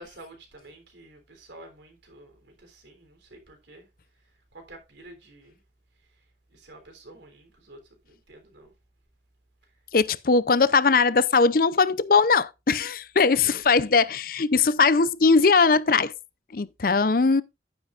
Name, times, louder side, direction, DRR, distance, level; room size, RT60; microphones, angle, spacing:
voice 1, 0.0-3.9 4.5-5.6 6.5-8.7 13.4-13.8, right 1 dB, 85° right, 3.4 m, -49 dB
voice 2, 9.9-16.1 16.5-17.4, left 4 dB, 50° left, 0.5 m, -20 dB
10.5 x 9.5 x 2.5 m
head